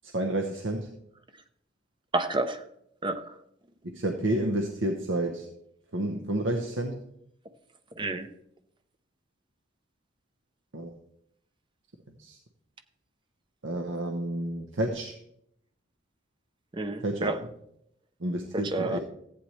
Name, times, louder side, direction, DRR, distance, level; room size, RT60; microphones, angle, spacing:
voice 1, 0.0-0.9 3.9-5.5 5.9-7.0 10.7-10.9 12.2-12.4 13.6-15.2 17.0-17.3 18.2-19.0, right 1 dB, 75° right, 4 dB, 0.9 m, -30 dB
voice 2, 2.1-2.6 3.0-3.4 8.0-8.3 16.7-17.4 18.5-19.0, right 2 dB, 25° right, 9 dB, 0.7 m, -30 dB
14.5 x 8.8 x 3.2 m, 0.75 s
head